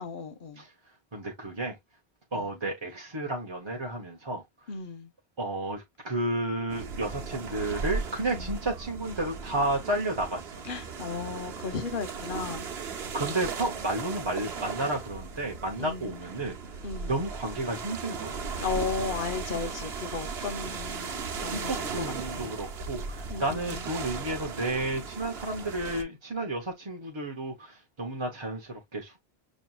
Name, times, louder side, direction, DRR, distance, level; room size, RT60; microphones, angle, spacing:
voice 1, 0.0-0.6 2.3-2.5 4.7-5.1 8.3-8.5 10.7-12.7 15.8-16.2 16.8-17.2 18.6-22.0 22.3-22.5 23.3-23.8, left 5 dB, 55° left, 0.9 m, -35 dB
voice 2, 0.6-1.8 2.3-4.7 5.4-10.5 13.1-18.4 20.6-20.7 21.4-29.2, right 2 dB, 30° right, 0.7 m, -32 dB
sound 1, 6.7-26.0, right 5 dB, 75° right, 1.1 m, -37 dB
6.2 x 2.7 x 2.3 m
omnidirectional pair, 1.1 m